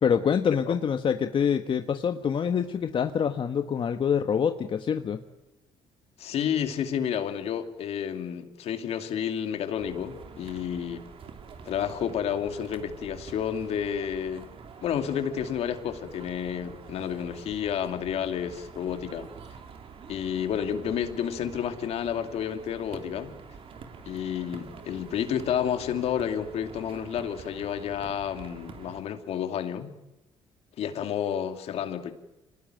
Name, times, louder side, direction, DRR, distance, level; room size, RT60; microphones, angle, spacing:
voice 1, 0.0-5.2, left 7 dB, 50° left, 7 dB, 1.3 m, -26 dB
voice 2, 6.2-11.0 11.7-14.4 14.8-19.3 20.1-23.3 24.0-29.9 30.8-32.1, left 8 dB, 70° left, 7 dB, 2.6 m, -30 dB
sound 1, 9.8-29.0, right 5 dB, 55° right, 3.3 m, -46 dB
26.0 x 19.5 x 9.2 m, 0.97 s
supercardioid pair, 70°, 11 cm